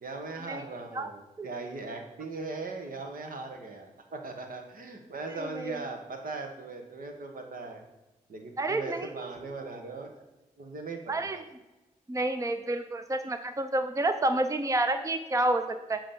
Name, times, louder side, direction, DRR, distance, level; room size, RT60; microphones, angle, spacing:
voice 1, 0.0-7.8 8.3-10.2 10.6-11.3, right 3 dB, 70° right, 3 dB, 1.1 m, -39 dB
voice 2, 5.4-5.7 8.6-9.1 11.1-11.4 12.1-16.0, right 2 dB, 20° right, 8 dB, 0.5 m, -29 dB
7.6 x 2.9 x 5.2 m, 1.0 s
supercardioid pair, 40°, 15 cm